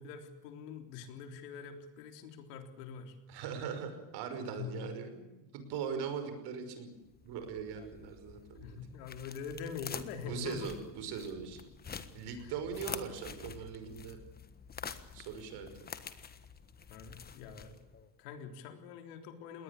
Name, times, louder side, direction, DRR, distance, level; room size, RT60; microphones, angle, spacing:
voice 1, 0.0-3.2 4.6-4.8 8.6-10.7 12.4-12.5 16.9-17.8 18.2-19.6, left 6 dB, 75° left, 6 dB, 3.9 m, -44 dB
voice 2, 3.3-5.3 5.5-6.9 7.2-8.8 10.3-11.7 12.1-14.2 15.1-15.9, right 6 dB, 55° right, 8 dB, 5.7 m, -40 dB
sound 1, 7.0-18.1, left 6 dB, 20° left, 1.4 m, -48 dB
21.5 x 18.5 x 8.5 m, 1.1 s
supercardioid pair, 130°, 47 cm